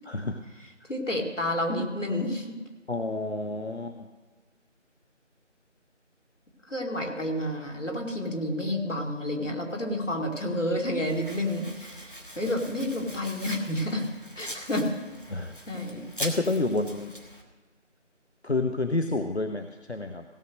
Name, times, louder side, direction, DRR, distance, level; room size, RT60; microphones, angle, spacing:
voice 1, 0.1-0.4 2.9-4.1 15.3-15.6 16.2-17.1 18.4-20.2, left 2 dB, 60° left, 7 dB, 0.7 m, -29 dB
voice 2, 0.9-2.6 6.7-14.1 14.3-14.9 15.7-16.0, left 1 dB, 75° left, 1 dB, 2.4 m, -30 dB
Domestic sounds home sounds, 11.0-17.4, equal, 45° left, 1.3 m, -41 dB
16.5 x 6.3 x 6.4 m, 1.3 s
figure-of-eight pair, 180°, 37 cm